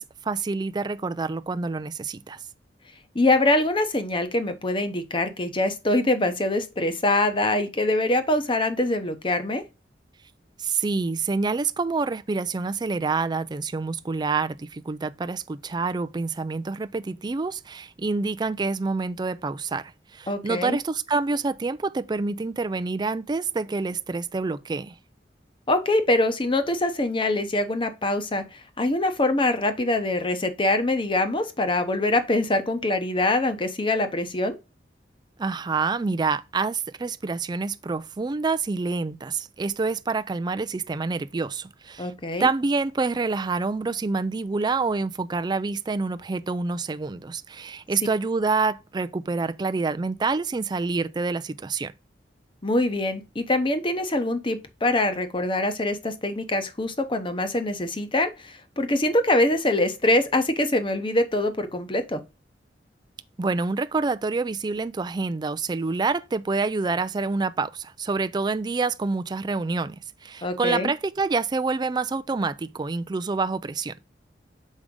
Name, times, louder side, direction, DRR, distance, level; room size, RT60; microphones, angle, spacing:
voice 1, 0.0-2.4 10.6-24.9 35.4-42.1 42.4-51.9 63.4-70.0 70.2-73.9, right 4 dB, 25° right, 0.4 m, -27 dB
voice 2, 3.1-9.6 20.3-20.8 25.7-34.6 42.0-42.5 52.6-62.2 70.4-70.9, left 2 dB, 30° left, 0.9 m, -24 dB
6.3 x 4.8 x 3.7 m
head